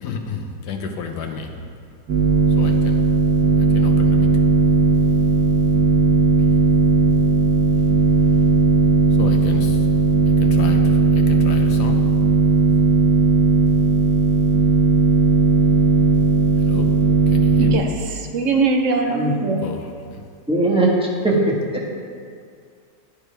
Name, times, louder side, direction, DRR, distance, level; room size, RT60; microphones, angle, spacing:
voice 1, 0.0-1.5 2.6-3.0 3.7-4.3 9.2-9.8 10.4-12.0 16.7-16.9 17.3-17.8 19.6-19.8, left 5 dB, 70° left, 1.4 m, -31 dB
sound 1, 2.1-17.8, right 4 dB, 70° right, 1.7 m, -16 dB
voice 2, 17.6-19.7, right 4 dB, 55° right, 1.0 m, -22 dB
voice 3, 20.5-21.0 21.2-21.6, right 2 dB, 5° right, 1.2 m, -18 dB
9.8 x 9.6 x 3.4 m
omnidirectional pair, 1.9 m